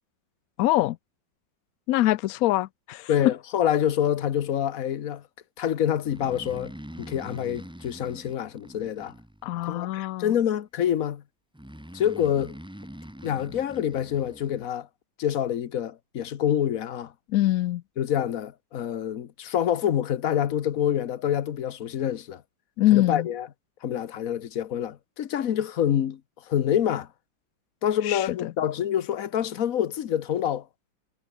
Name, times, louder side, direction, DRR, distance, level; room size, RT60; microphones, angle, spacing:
voice 1, 0.6-1.0 1.9-3.1 9.4-10.3 17.3-17.8 22.8-23.3 28.0-28.5, left 16 dB, 85° left, 0.7 m, -24 dB
voice 2, 3.1-5.2 5.6-6.7 7.0-9.1 9.6-11.2 11.9-12.5 13.2-14.9 15.2-17.1 18.0-22.4 22.9-23.5 23.8-26.2 26.5-27.1 27.8-30.7, left 10 dB, 55° left, 1.2 m, -26 dB
Breathing, 6.0-9.7 11.5-14.6, equal, 5° right, 1.2 m, -43 dB
omnidirectional pair, 2.1 m